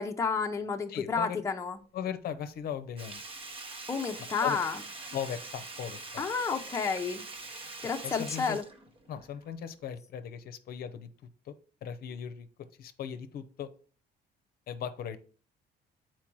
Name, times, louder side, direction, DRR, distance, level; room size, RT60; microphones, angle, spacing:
voice 1, 0.0-1.8 3.9-4.8 6.2-7.2 7.8-8.6, left 5 dB, 15° left, 3 dB, 0.7 m, -31 dB
voice 2, 0.9-1.4 1.9-3.2 4.4-4.6 5.1-6.2 8.0-8.6 9.1-11.1 11.5-11.6 11.8-12.5 12.8-13.7 14.7-15.2, left 8 dB, 60° left, 10 dB, 0.7 m, -38 dB
Sink (filling or washing), 3.0-9.5 9.8-9.9, right 3 dB, 30° right, 0.9 m, -44 dB
7.4 x 4.6 x 4.6 m, 0.40 s
cardioid pair, 150°, 18 cm